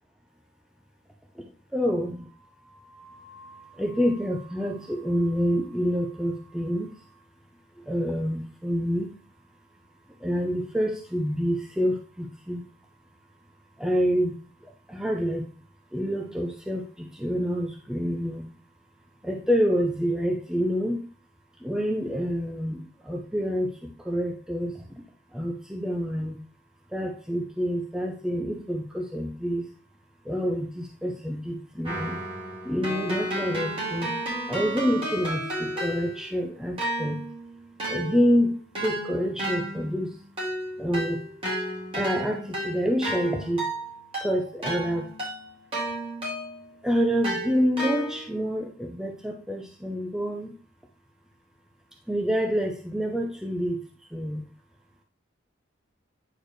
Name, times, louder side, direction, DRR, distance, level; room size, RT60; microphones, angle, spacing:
voice 1, 1.4-2.3 2.6-7.2 7.9-9.1 10.2-12.6 13.8-14.3 14.9-15.4 15.9-18.4 19.2-21.0 21.6-25.0 25.3-26.4 26.9-29.7 30.2-32.2 32.6-34.1 34.5-37.2 37.9-40.2 40.8-41.2 41.9-43.7 44.2-45.1 46.8-50.5 52.1-53.8 54.1-54.4, equal, 5° right, 1 dB, 0.7 m, -27 dB
Keyboard (musical), 31.8-36.4 36.8-46.7 47.2-48.4, right 1 dB, 30° right, 3.9 m, -33 dB
9.7 x 4.5 x 3.1 m, 0.37 s
head